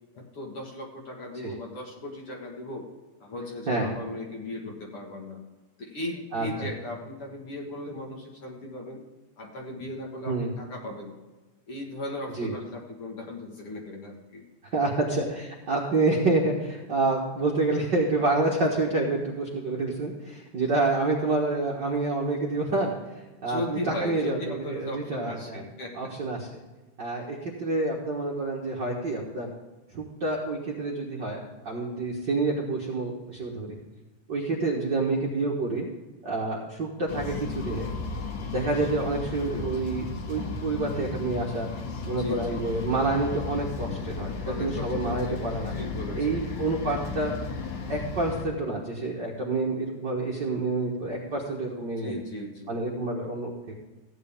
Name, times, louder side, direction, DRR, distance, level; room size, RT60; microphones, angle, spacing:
voice 1, 0.1-2.9 3.2-5.4 5.8-9.0 9.4-11.1 11.7-14.4 23.4-25.9 42.1-42.7 44.4-45.4 45.7-46.4 52.0-52.7, left 1 dB, 50° left, 0 dB, 2.2 m, -37 dB
voice 2, 14.7-22.9 23.4-25.6 25.9-26.5 27.0-29.5 29.9-31.4 31.6-33.7 34.3-35.9 36.2-37.9 38.5-41.7 42.0-44.3 44.6-45.7 46.1-47.3 47.9-52.2 52.7-53.7, right 2 dB, 45° right, -3 dB, 1.5 m, -28 dB
sound 1, 37.1-48.4, left 4 dB, 70° left, 2.7 m, -34 dB
15.0 x 9.5 x 3.6 m, 1.2 s
omnidirectional pair, 3.8 m